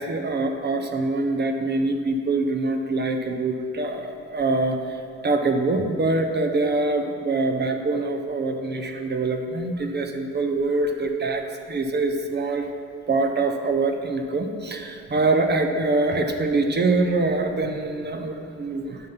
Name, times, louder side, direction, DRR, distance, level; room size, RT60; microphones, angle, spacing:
voice 1, 0.0-4.8 5.2-12.7 13.1-19.0, right 3 dB, 35° right, 5 dB, 0.8 m, -24 dB
9.4 x 5.3 x 5.7 m, 2.3 s
cardioid pair, 90°, 30 cm